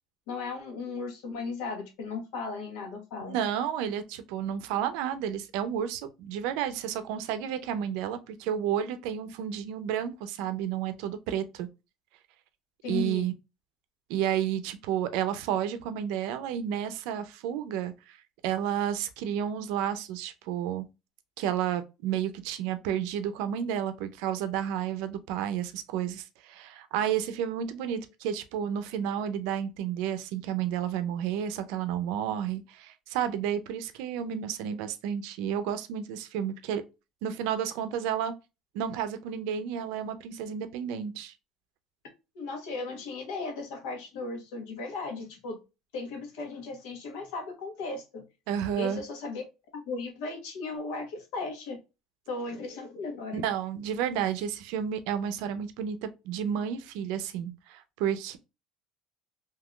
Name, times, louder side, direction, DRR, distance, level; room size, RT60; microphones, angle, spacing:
voice 1, 0.3-3.4 12.8-13.3 42.3-45.6 45.9-48.2 48.8-49.4 49.7-51.8 52.3-53.4, left 3 dB, 85° left, 1.2 m, -36 dB
voice 2, 3.2-11.7 12.9-13.3 14.1-18.2 18.4-20.8 21.4-36.8 37.2-38.3 38.7-41.3 48.5-49.0 53.3-58.4, right 9 dB, 75° right, 0.5 m, -31 dB
3.6 x 2.8 x 2.2 m
cardioid pair, 170°, 0 cm